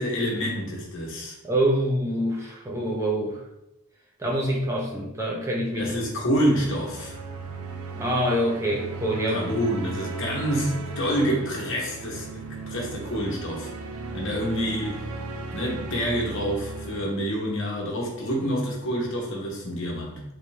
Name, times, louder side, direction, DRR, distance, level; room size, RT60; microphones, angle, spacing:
voice 1, 0.0-1.4 5.7-7.2 9.3-13.7 14.1-15.1 15.5-20.2, equal, 55° left, -3 dB, 1.0 m, -27 dB
voice 2, 1.4-3.4 4.2-5.9 7.9-9.6, right 1 dB, 15° right, -2 dB, 0.4 m, -26 dB
sound 1, 6.5-17.2, right 4 dB, 70° right, 0.4 m, -36 dB
3.5 x 2.9 x 3.2 m, 0.88 s
head